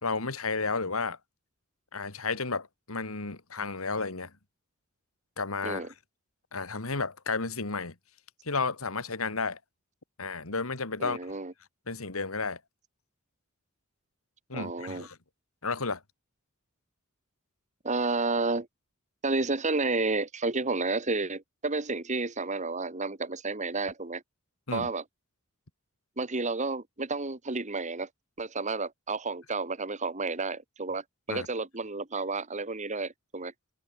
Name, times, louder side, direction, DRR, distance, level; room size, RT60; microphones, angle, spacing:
voice 1, 0.0-1.2 1.9-4.3 5.4-5.9 6.5-7.9 8.4-9.6 10.2-11.4 11.9-12.6 14.5-15.2 15.6-16.0 24.7-24.9 31.3-31.5, left 4 dB, 80° left, 2.3 m, -32 dB
voice 2, 5.6-5.9 11.0-11.5 14.5-15.1 17.8-18.7 19.2-24.2 24.7-25.1 26.2-28.1 28.4-33.5, right 3 dB, 35° right, 1.9 m, -31 dB
head